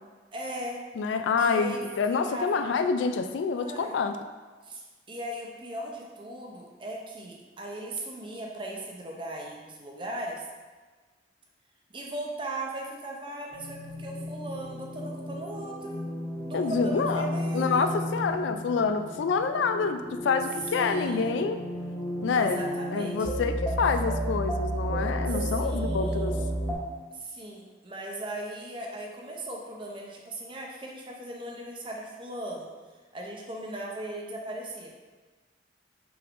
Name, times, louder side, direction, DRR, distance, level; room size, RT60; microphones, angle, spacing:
voice 1, 0.3-0.8 1.4-2.6 3.5-4.0 4.6-10.4 11.9-16.0 16.4-17.9 20.7-21.3 22.3-23.3 25.3-26.4 27.1-32.7 33.1-34.9, right 1 dB, 25° right, -1 dB, 0.6 m, -38 dB
voice 2, 1.0-4.2 16.5-17.3 17.5-21.6 22.2-22.6 22.9-26.4, left 5 dB, 90° left, 8 dB, 0.3 m, -27 dB
sound 1, 13.5-26.7, equal, 10° left, 1.3 m, -33 dB
5.8 x 3.5 x 2.5 m, 1.4 s
head